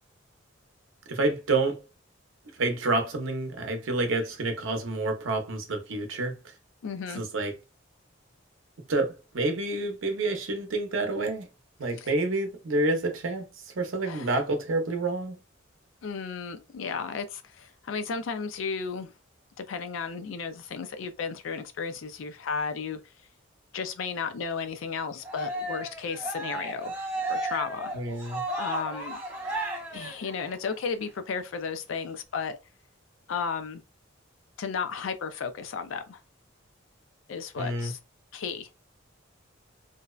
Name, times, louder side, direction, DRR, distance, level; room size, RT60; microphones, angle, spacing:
voice 1, 1.1-1.8 2.6-6.5 7.1-7.5 8.9-11.5 11.8-15.4 27.9-28.4 37.6-37.9, right 2 dB, 85° right, 0.6 m, -28 dB
voice 2, 6.8-7.2 12.0-12.1 14.1-14.3 16.0-19.1 19.6-23.0 23.7-27.0 27.3-27.9 28.6-29.2 29.9-32.6 33.3-33.8 34.6-36.2 37.3-38.0 38.3-38.7, left 5 dB, 80° left, 0.4 m, -34 dB
Cheering, 25.2-30.7, right 1 dB, 10° right, 0.6 m, -34 dB
2.6 x 2.0 x 2.3 m
head